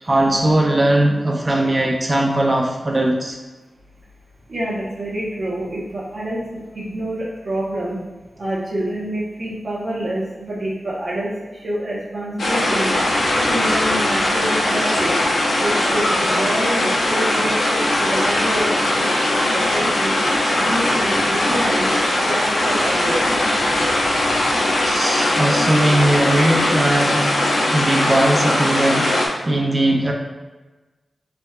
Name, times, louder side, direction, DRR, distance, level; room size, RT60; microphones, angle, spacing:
voice 1, 0.0-3.4 24.8-30.1, right 1 dB, 25° right, 0 dB, 0.4 m, -19 dB
voice 2, 4.5-6.4 6.7-8.0 8.4-12.9 13.4-15.1 15.6-19.1 19.5-20.2 20.6-23.2, right 1 dB, 50° right, -7 dB, 0.9 m, -27 dB
sound 1, 12.4-29.3, left 1 dB, 85° left, 0.8 m, -20 dB
4.1 x 3.4 x 2.3 m, 1.2 s
wide cardioid pair, 140°, 0 cm